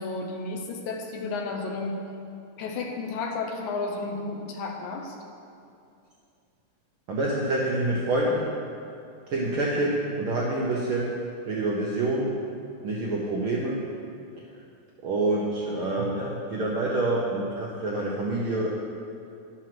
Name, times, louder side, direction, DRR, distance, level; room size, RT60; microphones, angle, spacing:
voice 1, 0.0-2.0 2.6-5.2, left 3 dB, 85° left, 1 dB, 2.4 m, -32 dB
voice 2, 7.1-8.5 9.3-11.2 11.5-12.4 12.8-13.9 15.0-18.7, right 2 dB, 65° right, -4 dB, 1.4 m, -27 dB
11.0 x 6.3 x 5.9 m, 2.5 s
omnidirectional pair, 3.4 m